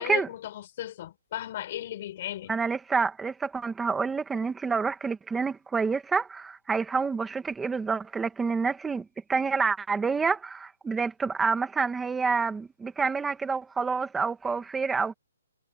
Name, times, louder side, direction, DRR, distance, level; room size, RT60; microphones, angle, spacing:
voice 1, 0.0-2.5, left 12 dB, 35° left, 6.1 m, -36 dB
voice 2, 2.5-15.1, right 5 dB, 5° right, 1.6 m, -28 dB
hypercardioid pair, 170°, 0 cm